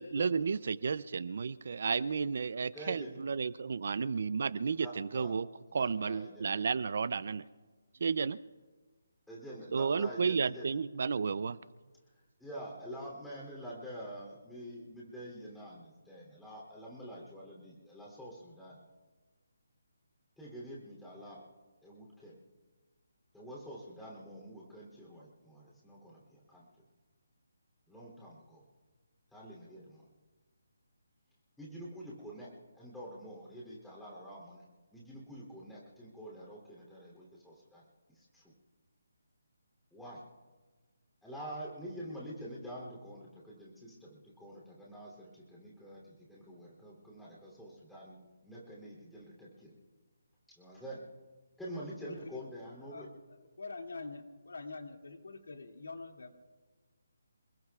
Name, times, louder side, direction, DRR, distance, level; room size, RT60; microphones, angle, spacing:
voice 1, 0.0-5.5 5.7-7.4 8.0-8.4 9.7-11.6, right 5 dB, 50° right, 18 dB, 0.4 m, -32 dB
voice 2, 2.7-3.2 4.8-5.3 5.7-6.5 9.3-10.7 12.4-18.8 20.4-21.4 21.8-22.3 23.3-26.7 27.9-28.6 29.3-30.1 31.6-34.6 34.9-38.5 39.9-40.2 41.2-49.7 50.5-51.0 51.6-53.1, equal, ahead, -6 dB, 3.0 m, -47 dB
voice 3, 52.0-52.5 52.8-53.1 53.6-56.3, left 3 dB, 80° left, 3 dB, 2.3 m, -45 dB
28.5 x 20.5 x 2.4 m, 1.4 s
hypercardioid pair, 175°, 0 cm